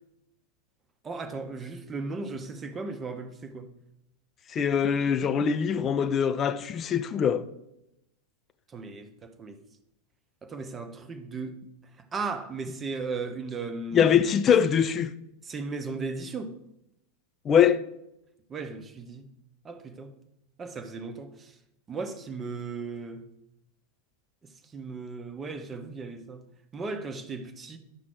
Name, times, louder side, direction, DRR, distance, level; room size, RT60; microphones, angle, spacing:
voice 1, 1.0-3.7 8.7-9.6 10.4-11.6 12.0-14.1 15.4-16.6 18.5-19.3 19.6-20.1 20.6-21.6 21.9-23.3 24.7-26.4 26.7-27.8, right 4 dB, 20° right, 0.9 m, -36 dB
voice 2, 4.5-7.4 13.9-15.1 17.4-17.8, left 8 dB, 25° left, 0.6 m, -23 dB
11.0 x 6.1 x 4.4 m
figure-of-eight pair, 90°, 0 cm